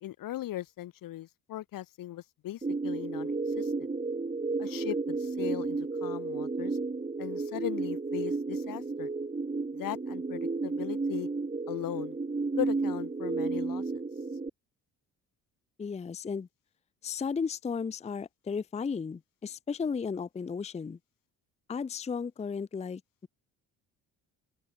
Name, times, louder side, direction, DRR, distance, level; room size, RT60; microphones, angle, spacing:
voice 1, 0.0-3.7 4.6-6.8 7.2-9.1 9.7-11.3 11.7-12.2 12.6-13.8, left 14 dB, 60° left, 0.8 m, -38 dB
sound 1, 2.6-14.5, right 3 dB, 20° right, 1.5 m, -32 dB
voice 2, 15.8-16.5 17.0-21.0 21.7-23.3, left 5 dB, 20° left, 0.5 m, -34 dB
open air
supercardioid pair, 55°, 38 cm